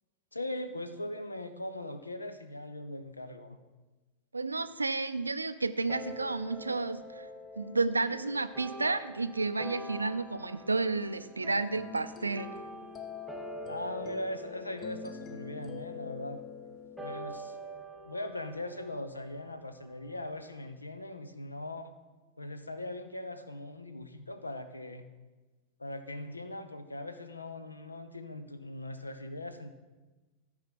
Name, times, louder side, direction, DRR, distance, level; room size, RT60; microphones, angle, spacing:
voice 1, 0.3-3.6 13.7-16.4 17.0-17.6 18.0-21.9 22.4-25.0 25.8-29.7, left 1 dB, 80° left, 11 dB, 0.6 m, -40 dB
voice 2, 4.3-7.3 7.6-12.5, right 3 dB, 80° right, 13 dB, 0.4 m, -31 dB
sound 1, 5.9-20.6, right 1 dB, 5° right, 1.2 m, -46 dB
sound 2, 10.7-17.2, left 8 dB, 30° left, 0.5 m, -46 dB
13.5 x 4.8 x 5.8 m, 1.2 s
figure-of-eight pair, 90°, 0 cm